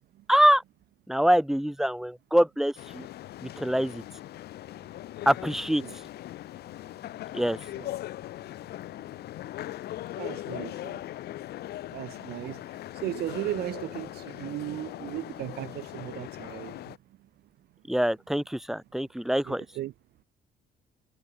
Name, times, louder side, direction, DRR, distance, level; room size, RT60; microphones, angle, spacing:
voice 1, 0.3-0.6 1.1-3.1 3.4-4.0 5.2-5.8 7.3-7.6 17.9-19.7, equal, ahead, 6.2 m, -24 dB
sound 1, 2.8-17.0, left 14 dB, 70° left, 6.7 m, -40 dB
voice 2, 10.2-11.0 11.9-12.6 13.0-17.0 19.5-19.9, right 15 dB, 70° right, 1.9 m, -36 dB
cardioid pair, 110°, 17 cm